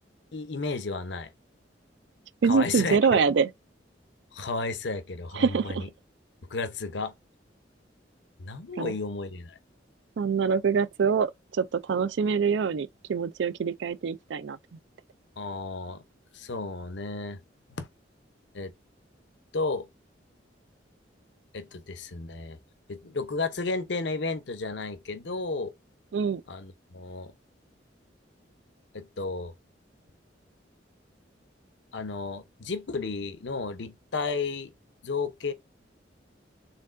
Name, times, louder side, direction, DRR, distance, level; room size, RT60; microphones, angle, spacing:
voice 1, 0.3-1.3 2.4-3.2 4.3-5.9 6.5-7.1 8.4-9.6 15.4-16.0 16.3-17.4 17.8-17.9 18.5-18.7 19.5-19.9 21.5-22.6 22.9-25.7 26.5-27.3 28.9-29.5 31.9-34.7 35.0-35.5, left 3 dB, 70° left, 0.7 m, -33 dB
voice 2, 2.4-3.5 5.3-5.8 8.8-8.9 10.2-14.6 26.1-26.4, right 6 dB, 75° right, 0.4 m, -25 dB
4.2 x 3.6 x 2.5 m
head